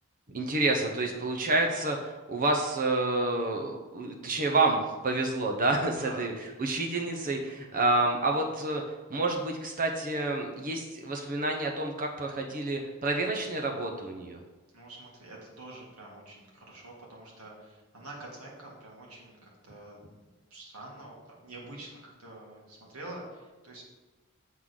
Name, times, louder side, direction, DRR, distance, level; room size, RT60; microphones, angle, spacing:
voice 1, 0.3-6.3 6.6-8.8 9.1-14.4, right 2 dB, 40° right, 2 dB, 0.7 m, -29 dB
voice 2, 6.0-6.3 7.7-8.0 14.7-20.2 20.5-23.8, right 2 dB, 85° right, -3 dB, 2.1 m, -46 dB
7.7 x 3.8 x 6.3 m, 1.2 s
head